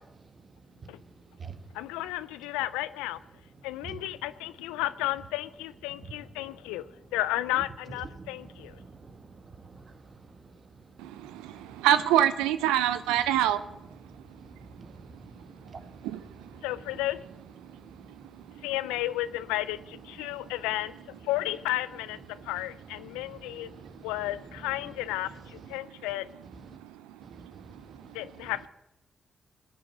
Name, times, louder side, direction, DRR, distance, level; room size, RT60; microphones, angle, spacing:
voice 1, 1.7-3.2 3.6-6.8 7.1-8.7 16.6-17.2 18.6-20.9 21.2-23.7 24.0-26.3 28.1-28.7, left 16 dB, 90° left, 16 dB, 0.4 m, -33 dB
voice 2, 8.1-9.9 14.3-16.0 16.6-16.7 23.2-24.0 27.3-27.8, right 4 dB, 50° right, 9 dB, 1.5 m, -47 dB
voice 3, 11.0-13.6 16.0-16.2 18.3-18.6 26.7-27.2 27.7-28.2, right 11 dB, 85° right, 13 dB, 0.5 m, -26 dB
19.5 x 8.4 x 7.3 m, 0.93 s
hypercardioid pair, 40°, 0 cm